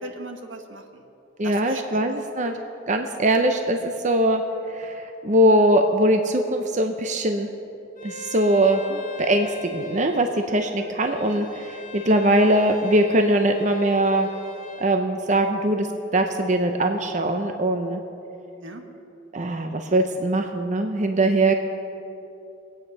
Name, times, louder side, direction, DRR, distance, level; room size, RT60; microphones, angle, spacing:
voice 1, 0.0-1.0 1.4-2.1 8.9-9.0 11.2-11.5 18.5-18.8, right 2 dB, 80° right, 4 dB, 1.3 m, -39 dB
voice 2, 1.4-2.5 2.9-4.4 4.7-7.5 8.0-8.8 9.2-11.5 11.9-14.3 14.8-15.9 16.1-18.0 19.3-21.5, right 1 dB, 40° right, 5 dB, 0.7 m, -21 dB
Bowed string instrument, 8.0-14.9, left 3 dB, 40° left, 1.8 m, -40 dB
21.5 x 8.9 x 5.4 m, 2.8 s
head